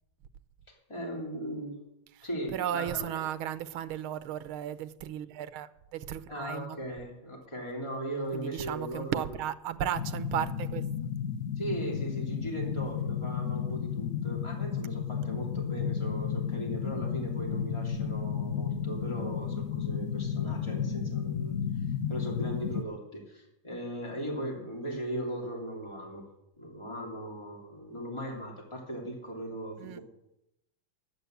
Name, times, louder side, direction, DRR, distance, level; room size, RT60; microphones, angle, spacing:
voice 1, 0.7-1.9 2.2-3.2 6.3-9.3 11.6-21.8 22.1-26.2 26.6-30.0, right 1 dB, 15° left, 2.8 m, -38 dB
voice 2, 2.2-6.8 8.3-10.9 29.8-30.0, right 10 dB, 80° right, 1.6 m, -35 dB
sound 1, 10.0-22.8, left 7 dB, 65° left, 0.8 m, -33 dB
11.5 x 9.5 x 8.0 m
omnidirectional pair, 2.3 m